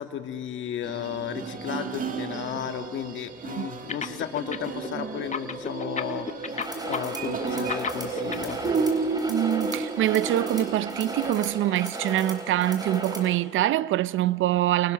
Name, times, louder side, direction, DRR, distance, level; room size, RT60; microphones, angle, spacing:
voice 1, 0.0-8.6, left 9 dB, 75° left, 1.7 m, -34 dB
sound 1, 0.8-11.3, right 4 dB, 45° right, 2.0 m, -32 dB
sound 2, 3.9-4.9 5.2-8.5, left 6 dB, 35° left, 1.3 m, -31 dB
sound 3, 6.5-13.4, right 1 dB, 20° right, 4.5 m, -36 dB
voice 2, 9.3-14.9, right 13 dB, 80° right, 0.6 m, -24 dB
29.5 x 29.0 x 6.4 m
cardioid pair, 90°, 20 cm